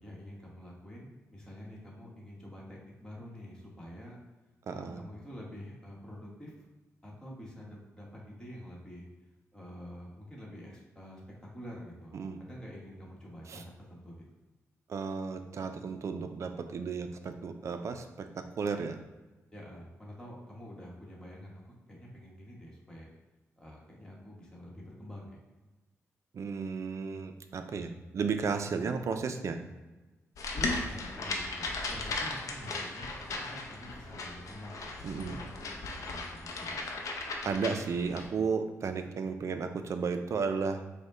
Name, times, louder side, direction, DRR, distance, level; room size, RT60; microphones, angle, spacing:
voice 1, 0.0-4.2 4.7-6.7 7.0-9.1 9.5-11.2 11.5-14.2 19.5-23.1 23.6-25.4 30.5-34.9 35.2-35.5 35.7-36.8 37.1-37.2, equal, 10° left, -4 dB, 1.2 m, -47 dB
voice 2, 4.7-5.0 12.1-12.4 13.5-13.6 14.9-19.0 26.3-29.6 35.0-35.4 37.4-40.8, right 5 dB, 60° right, 8 dB, 0.4 m, -34 dB
sound 1, 30.4-38.3, left 3 dB, 80° left, 0.6 m, -37 dB
5.1 x 2.1 x 3.7 m, 1.1 s
cardioid pair, 100°, 6 cm